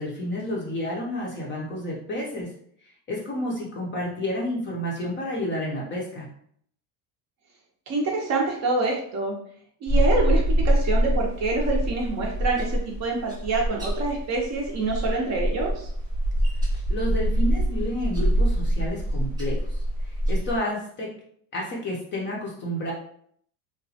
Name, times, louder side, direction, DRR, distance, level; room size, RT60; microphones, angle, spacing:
voice 1, 0.0-2.5 3.1-6.3 16.9-21.1 21.5-22.9, left 1 dB, 25° left, -3 dB, 0.4 m, -30 dB
voice 2, 7.9-9.4 9.8-15.9, right 3 dB, 35° right, 0 dB, 0.5 m, -26 dB
sound 1, 9.9-20.6, equal, 10° right, 0.7 m, -24 dB
2.9 x 2.1 x 2.7 m, 0.64 s
cardioid pair, 145°, 47 cm